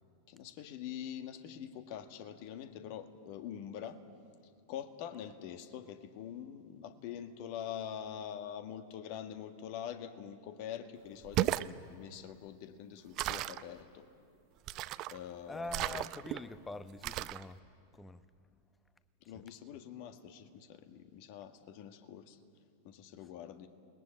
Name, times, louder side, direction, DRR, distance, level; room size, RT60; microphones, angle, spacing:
voice 1, 0.3-4.0 4.7-14.1 15.1-16.0 19.2-22.4 22.8-23.7, left 9 dB, 45° left, 1.7 m, -45 dB
sound 1, 11.2-11.7 13.2-13.6 14.7-15.2 15.7-16.4 17.0-17.4, right 16 dB, 40° right, 0.6 m, -34 dB
voice 2, 15.5-17.6 17.9-18.3 19.3-19.4, left 2 dB, 10° left, 1.0 m, -44 dB
29.5 x 20.5 x 8.9 m
figure-of-eight pair, 90°, 0 cm